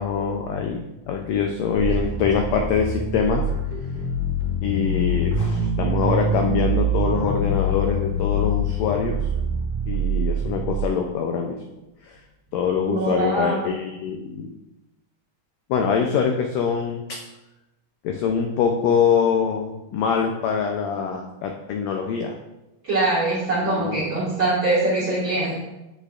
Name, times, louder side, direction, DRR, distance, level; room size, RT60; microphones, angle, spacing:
voice 1, 0.0-3.4 4.6-9.2 9.9-11.6 12.1-12.2 12.5-14.5 15.7-17.2 18.0-22.3 23.6-24.0, left 6 dB, 85° left, 3 dB, 1.5 m, -24 dB
sound 1, 1.8-10.9, right 1 dB, 75° right, 2.5 m, -24 dB
voice 2, 12.9-13.6 22.8-25.6, right 2 dB, 45° right, -9 dB, 2.0 m, -23 dB
8.1 x 6.1 x 2.4 m, 0.98 s
omnidirectional pair, 3.6 m